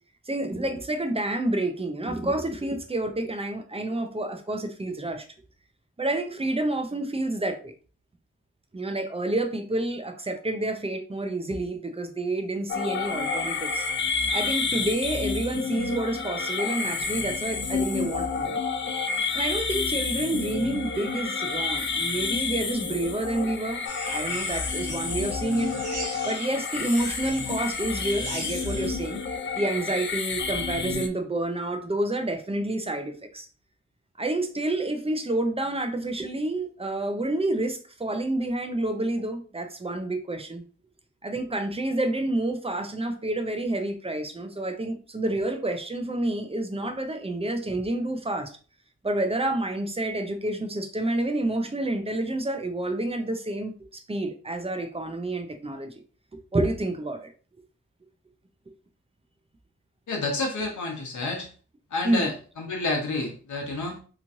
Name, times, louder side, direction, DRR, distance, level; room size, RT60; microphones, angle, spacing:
voice 1, 0.3-5.3 6.0-7.7 8.7-13.9 14.3-18.6 19.3-23.8 24.1-25.8 26.3-29.2 29.5-33.5 34.2-40.6 41.2-48.5 49.0-56.0 56.5-57.3 62.0-62.3, right 1 dB, 20° right, 6 dB, 0.5 m, -29 dB
sound 1, 12.7-31.1, left 5 dB, 40° left, 0.4 m, -30 dB
sound 2, 23.9-28.9, right 2 dB, 85° right, 1.0 m, -40 dB
voice 2, 60.1-61.5 61.9-64.0, left 3 dB, 80° left, 0 dB, 0.9 m, -29 dB
3.0 x 2.5 x 2.6 m, 0.38 s
cardioid pair, 60°, 29 cm